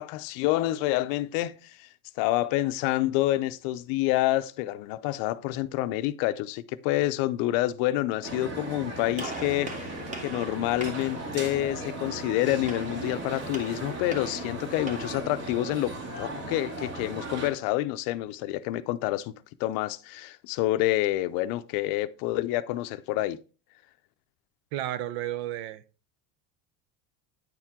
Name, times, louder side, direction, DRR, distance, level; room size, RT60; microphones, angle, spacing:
voice 1, 0.0-1.9 2.2-19.3 19.6-23.4, left 15 dB, 65° left, 0.6 m, -28 dB
sound 1, 8.2-17.5, right 2 dB, 45° right, 2.3 m, -37 dB
Gunshot gunfire, 9.2-15.2, right 2 dB, 20° right, 1.5 m, -42 dB
voice 2, 24.7-25.8, right 13 dB, 70° right, 0.7 m, -32 dB
9.5 x 4.6 x 3.6 m
cardioid pair, 150°, 38 cm